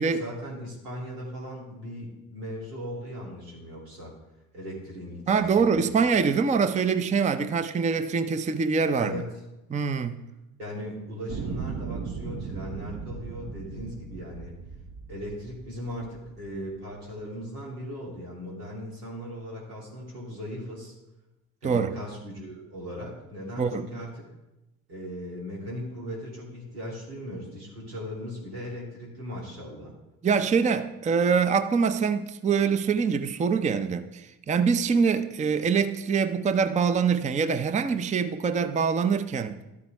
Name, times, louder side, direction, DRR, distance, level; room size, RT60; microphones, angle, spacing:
voice 1, 0.1-4.1 4.5-6.1 8.9-9.3 10.6-14.5 15.1-20.9 21.6-24.3 24.9-29.9, equal, 85° right, 3.0 m, -38 dB
voice 2, 5.3-9.2 9.7-10.2 21.6-22.0 23.6-23.9 30.2-39.6, right 5 dB, 15° right, 0.5 m, -24 dB
sound 1, 11.3-16.5 17.3-17.4, right 5 dB, 45° right, 1.0 m, -37 dB
12.0 x 9.3 x 3.4 m
hypercardioid pair, 60°, 45 cm